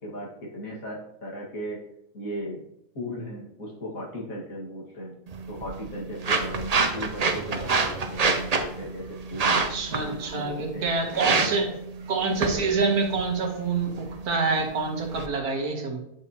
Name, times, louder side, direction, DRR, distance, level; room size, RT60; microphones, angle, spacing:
voice 1, 0.0-1.8 2.1-2.6 2.9-5.2 5.5-9.6 9.9-11.5, equal, 65° left, -2 dB, 2.3 m, -37 dB
sound 1, 5.3-15.3, right 4 dB, 55° right, 0.4 m, -28 dB
voice 2, 9.5-11.7 12.1-16.0, right 4 dB, 85° right, 2 dB, 1.8 m, -27 dB
9.4 x 5.5 x 2.9 m, 0.78 s
omnidirectional pair, 1.6 m